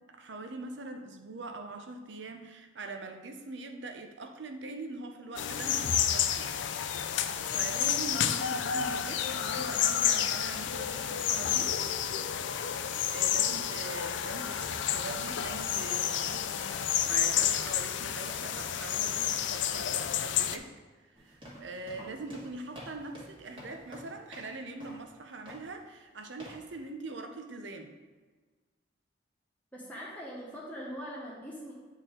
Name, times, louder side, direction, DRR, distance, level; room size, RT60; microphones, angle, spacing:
voice 1, 0.1-6.5 7.5-11.8 13.1-20.7 21.0-27.9, right 3 dB, 70° right, 5 dB, 0.7 m, -43 dB
sound 1, 5.4-20.6, left 9 dB, 70° left, 0.4 m, -30 dB
sound 2, 21.1-24.5 24.8-25.1 25.5-25.7 26.4-26.7, equal, 25° right, 1.7 m, -48 dB
voice 2, 29.7-31.7, equal, 10° left, -6 dB, 1.2 m, -41 dB
8.1 x 4.5 x 3.7 m, 1.4 s
head